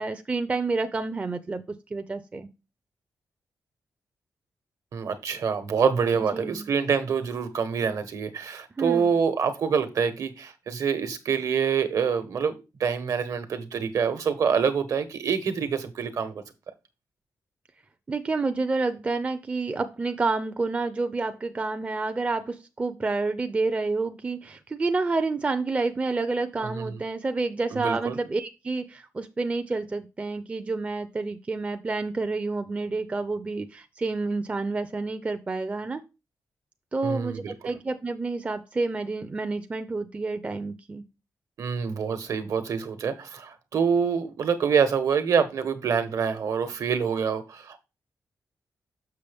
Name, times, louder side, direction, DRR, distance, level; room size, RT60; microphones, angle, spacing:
voice 1, 0.0-2.5 6.2-6.7 8.8-9.2 18.1-36.0 36.9-41.0, right 3 dB, 20° right, 8 dB, 0.5 m, -29 dB
voice 2, 4.9-16.4 26.6-27.0 27.7-28.2 37.0-37.5 41.6-47.8, right 6 dB, 65° right, 10 dB, 1.1 m, -26 dB
6.8 x 6.4 x 3.4 m, 0.27 s
wide cardioid pair, 160°, 6 cm